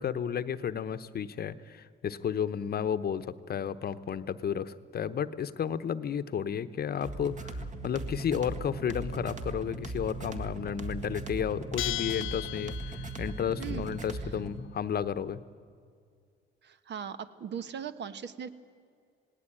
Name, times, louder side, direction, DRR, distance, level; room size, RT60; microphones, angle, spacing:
voice 1, 0.0-15.4, left 8 dB, 50° left, 13 dB, 0.9 m, -32 dB
sound 1, 7.0-14.6, right 2 dB, 40° right, 1.8 m, -39 dB
Bell, 11.8-13.3, left 17 dB, 85° left, 0.5 m, -36 dB
voice 2, 16.6-18.5, right 8 dB, 60° right, 12 dB, 1.2 m, -39 dB
18.5 x 18.0 x 8.8 m, 2.2 s
cardioid pair, 90°, 20 cm